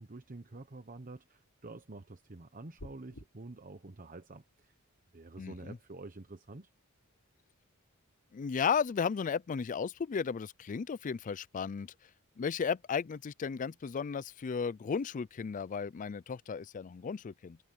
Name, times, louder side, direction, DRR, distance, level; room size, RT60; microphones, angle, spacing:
voice 1, 0.0-4.7 5.1-6.7, right 2 dB, 40° right, 1.1 m, -48 dB
sound 1, 2.8-3.3, left 1 dB, 85° left, 4.2 m, -48 dB
voice 2, 5.4-5.8 8.3-11.9 12.4-17.6, left 6 dB, 35° left, 0.4 m, -34 dB
head